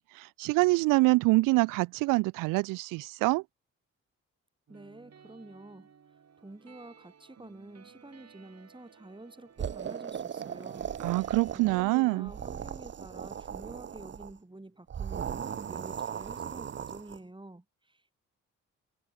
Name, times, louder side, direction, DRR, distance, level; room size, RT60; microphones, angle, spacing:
voice 1, 0.0-3.4 11.0-12.3, right 23 dB, 90° right, 0.5 m, -25 dB
voice 2, 4.7-5.9 6.4-10.9 11.5-18.1, right 2 dB, 15° right, 5.2 m, -49 dB
sound 1, 4.7-12.6, right 7 dB, 55° right, 4.9 m, -58 dB
sound 2, 9.6-11.9 12.2-14.3 14.9-17.2, right 8 dB, 35° right, 0.6 m, -38 dB
supercardioid pair, 55°, 32 cm